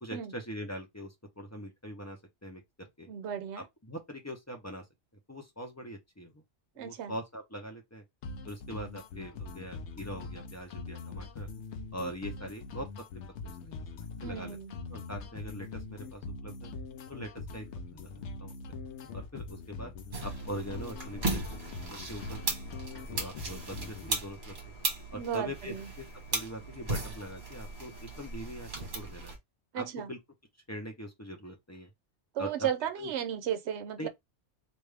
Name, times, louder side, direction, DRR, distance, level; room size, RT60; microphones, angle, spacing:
voice 1, 0.0-3.1 3.6-4.8 5.3-6.4 6.8-8.0 8.4-11.5 11.9-12.9 13.4-14.6 14.9-16.7 17.1-17.7 17.9-18.5 19.1-19.9 20.2-21.6 21.9-22.6 22.9-24.5 25.1-26.1 26.3-29.4 29.7-30.2 30.7-31.9 32.4-32.7 33.0-33.1 34.0-34.1, equal, 15° left, 0.7 m, -42 dB
voice 2, 3.1-3.7 6.8-7.1 14.2-14.7 25.1-25.9 29.7-30.1 32.3-34.1, right 9 dB, 75° right, 0.9 m, -35 dB
sound 1, 8.2-24.2, left 3 dB, 85° left, 0.9 m, -43 dB
sound 2, 20.1-29.4, right 2 dB, 45° right, 1.5 m, -37 dB
3.4 x 2.5 x 3.3 m
omnidirectional pair, 1.2 m